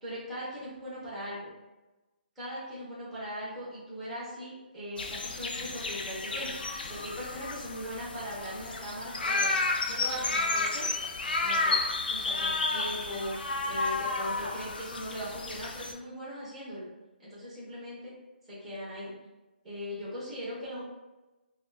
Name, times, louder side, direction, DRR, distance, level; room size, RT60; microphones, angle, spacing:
voice 1, 0.0-1.5 2.4-9.5 9.9-10.9 11.4-13.4 13.6-16.9 17.2-18.2 18.5-19.1 19.6-20.8, equal, ahead, -9 dB, 0.4 m, -39 dB
sound 1, 5.0-15.9, left 3 dB, 60° left, 0.4 m, -32 dB
2.5 x 2.2 x 3.1 m, 1.1 s
hypercardioid pair, 180°, 6 cm